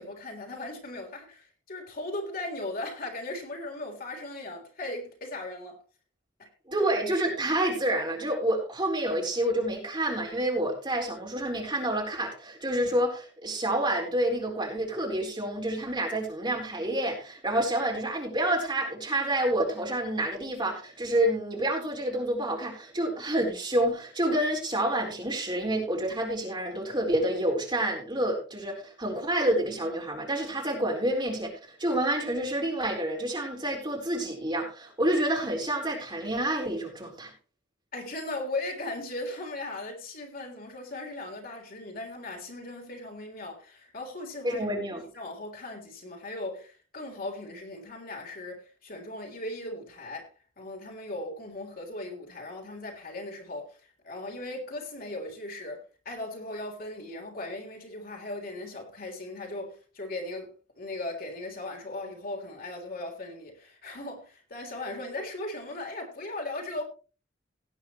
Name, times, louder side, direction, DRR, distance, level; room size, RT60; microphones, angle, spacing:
voice 1, 0.0-5.8 6.4-6.5 37.9-44.7 45.1-66.8, left 2 dB, 50° left, 3.6 m, -38 dB
voice 2, 6.7-37.3 44.4-45.0, right 1 dB, 25° right, 4.2 m, -28 dB
18.0 x 9.5 x 3.1 m
head